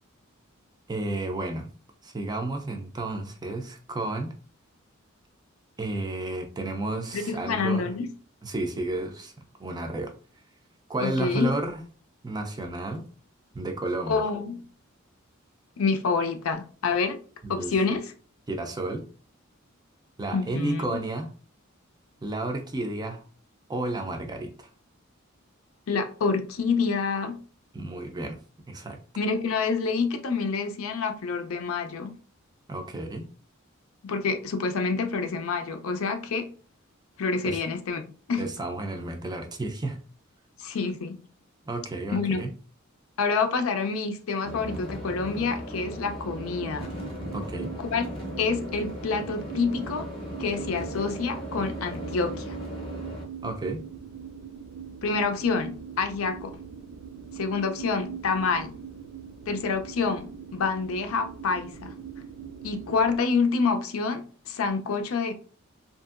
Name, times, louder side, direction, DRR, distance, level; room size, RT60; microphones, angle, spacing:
voice 1, 0.9-1.7 2.0-4.3 5.8-7.9 8.4-9.3 9.6-10.1 10.9-11.8 12.2-13.1 13.5-14.2 17.4-17.7 18.5-19.1 20.2-21.3 22.2-23.2 23.7-24.5 27.7-28.4 28.7-29.0 32.7-33.3 37.5-37.6 38.4-40.0 41.7-42.5 47.3-47.7 53.4-53.8, right 2 dB, 20° right, 0.4 m, -32 dB
voice 2, 7.1-8.1 11.0-11.5 14.1-14.6 15.8-17.2 17.5-18.1 20.3-20.9 25.9-27.4 29.2-32.1 34.0-36.5 37.2-38.0 38.3-38.4 40.6-41.1 42.1-42.4 43.2-46.9 47.9-48.0 48.4-50.0 50.4-52.6 55.0-56.5 57.4-58.7 59.5-61.9 62.6-65.3, left 4 dB, 75° left, 0.4 m, -27 dB
sound 1, 44.4-53.2, equal, 25° left, 0.7 m, -37 dB
sound 2, 46.2-63.2, right 8 dB, 85° right, 0.3 m, -42 dB
2.7 x 2.5 x 2.4 m
head